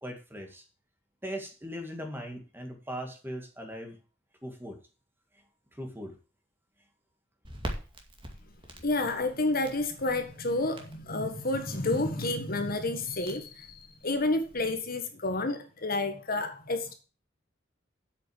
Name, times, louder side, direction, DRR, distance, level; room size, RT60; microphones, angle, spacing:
voice 1, 0.0-0.6 1.2-4.0 4.4-4.8 5.7-6.2, equal, 10° right, 2.1 m, -39 dB
Crackle, 7.4-14.8, right 1 dB, 25° right, 2.2 m, -45 dB
voice 2, 8.8-16.9, left 2 dB, 50° left, 1.7 m, -30 dB
8.2 x 6.5 x 8.0 m
head